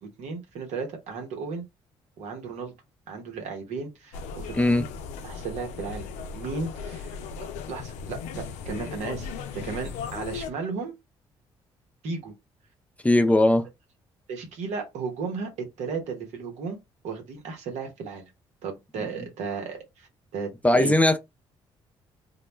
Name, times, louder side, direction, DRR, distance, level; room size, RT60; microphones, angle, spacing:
voice 1, 0.0-1.6 2.2-2.7 3.1-4.9 5.2-6.1 6.3-7.1 7.7-10.9 12.0-12.3 14.3-16.8 17.0-18.2 18.6-20.9, right 4 dB, 75° right, 1.0 m, -35 dB
sound 1, 4.1-10.5, left 5 dB, 80° left, 0.4 m, -37 dB
voice 2, 4.5-4.8 13.0-13.7 20.6-21.2, left 1 dB, 10° left, 0.5 m, -19 dB
2.2 x 2.1 x 3.0 m
supercardioid pair, 55°, 12 cm